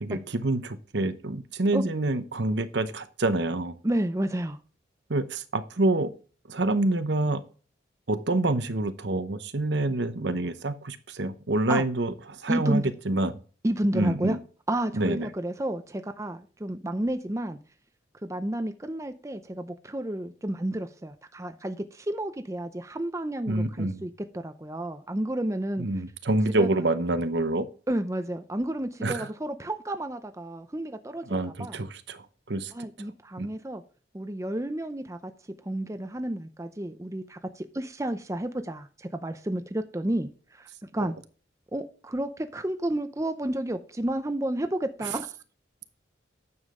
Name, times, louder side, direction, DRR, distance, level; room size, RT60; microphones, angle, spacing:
voice 1, 0.0-3.8 5.1-6.1 6.5-7.4 8.1-13.3 13.9-14.4 14.9-15.3 23.5-24.1 25.8-27.7 29.0-29.3 31.3-32.7 33.4-33.5, right 2 dB, 65° right, 11 dB, 0.9 m, -27 dB
voice 2, 3.8-4.6 11.7-11.8 12.5-12.9 13.6-14.4 14.7-17.6 18.2-25.9 26.5-26.7 27.9-31.3 31.6-31.8 32.7-33.8 34.1-35.3 35.6-41.1 41.7-45.4, right 1 dB, 15° right, 9 dB, 0.6 m, -31 dB
9.6 x 7.3 x 3.7 m, 0.37 s
head